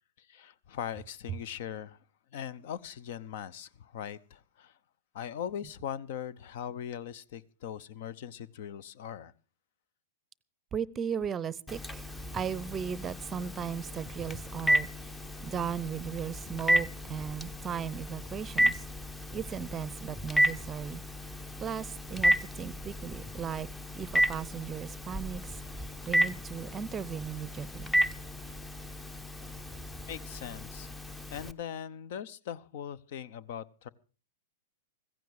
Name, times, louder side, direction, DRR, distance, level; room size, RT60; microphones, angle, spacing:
voice 1, 0.2-2.0 2.3-4.7 5.1-9.3 30.1-30.9 31.3-33.9, left 9 dB, 55° left, 0.8 m, -40 dB
voice 2, 10.7-15.1 15.4-18.8 19.3-21.0 21.6-23.7 23.9-28.0, right 7 dB, 20° right, 0.6 m, -37 dB
Telephone, 11.7-31.5, right 1 dB, 10° left, 0.7 m, -32 dB
15.5 x 15.5 x 4.8 m
hypercardioid pair, 110°, 0 cm